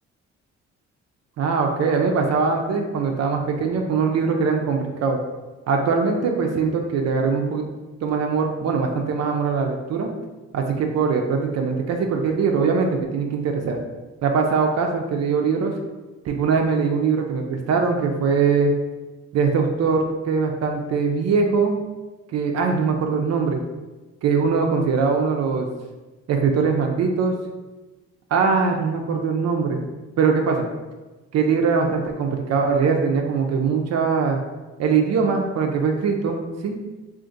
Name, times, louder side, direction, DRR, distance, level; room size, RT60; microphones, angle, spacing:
voice 1, 1.4-5.2 5.7-7.6 8.0-10.1 10.5-13.8 14.2-15.7 16.2-18.8 19.3-21.8 22.3-23.6 24.2-25.7 26.3-27.4 28.3-29.8 30.2-30.7 31.3-34.4 34.8-36.8, right 5 dB, 55° right, 3 dB, 0.5 m, -21 dB
2.5 x 2.5 x 3.8 m, 1.2 s
cardioid pair, 90°, 30 cm